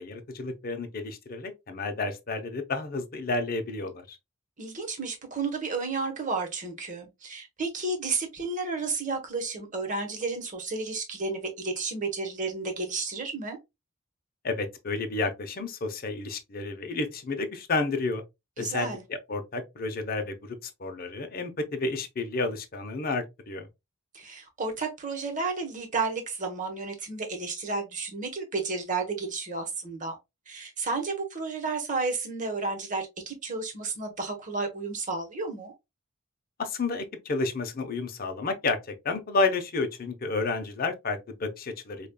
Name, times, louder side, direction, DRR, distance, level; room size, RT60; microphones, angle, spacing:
voice 1, 0.0-4.2 14.4-18.2 18.6-23.7 36.6-38.8 39.0-42.1, left 3 dB, 45° left, 0.6 m, -31 dB
voice 2, 4.6-13.6 18.6-19.0 24.1-30.2 30.5-35.7, right 3 dB, 40° right, 1.1 m, -32 dB
5.0 x 2.4 x 2.2 m
head